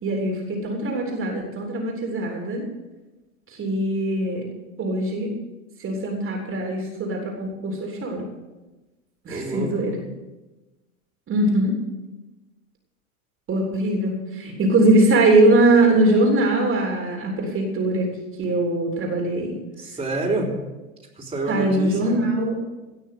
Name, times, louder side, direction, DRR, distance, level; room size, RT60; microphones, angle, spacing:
voice 1, 0.0-2.6 3.5-4.4 4.8-5.3 5.8-8.2 9.2-10.0 11.3-11.8 13.5-18.1 18.4-19.5 21.5-22.5, right 2 dB, 30° right, 0 dB, 3.3 m, -21 dB
voice 2, 9.3-9.9 19.8-20.5 21.2-22.2, right 2 dB, 15° right, 0 dB, 3.5 m, -28 dB
17.5 x 6.3 x 7.7 m, 1.1 s
hypercardioid pair, 90°, 42 cm